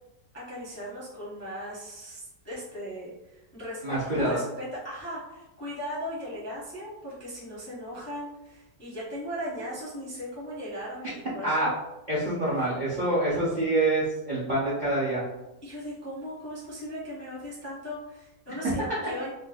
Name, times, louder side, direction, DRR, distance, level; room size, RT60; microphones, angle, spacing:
voice 1, 0.3-11.7 12.5-12.7 15.6-19.3, equal, 15° left, -8 dB, 0.5 m, -38 dB
voice 2, 3.8-4.4 11.4-11.7 12.1-15.2, right 1 dB, 50° right, -8 dB, 0.5 m, -26 dB
4.2 x 2.1 x 2.3 m, 0.96 s
omnidirectional pair, 1.8 m